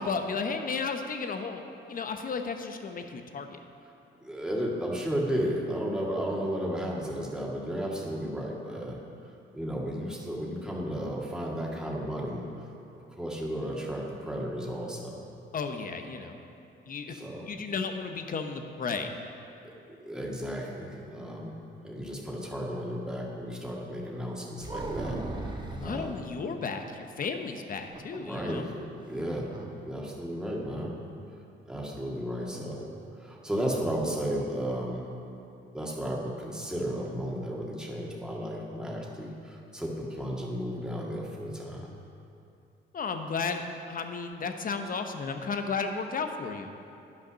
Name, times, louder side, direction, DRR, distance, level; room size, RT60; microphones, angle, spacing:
voice 1, 0.0-1.6 1.9-3.6 15.5-16.4 16.9-17.1 17.5-19.1 25.7-28.7 42.9-43.6 43.9-46.7, left 5 dB, 45° left, 6 dB, 0.9 m, -33 dB
voice 2, 4.2-9.0 9.5-12.4 12.9-15.2 17.1-17.5 19.6-21.5 21.8-26.2 28.2-29.5 29.8-30.9 31.7-32.9 33.2-35.0 35.7-41.9, equal, 5° right, -3 dB, 1.9 m, -34 dB
sound 1, 24.6-26.0 27.8-28.7 29.0-29.1 29.5-29.7, right 2 dB, 25° right, 1.2 m, -36 dB
10.5 x 5.9 x 6.3 m, 2.7 s
cardioid pair, 90°, 20 cm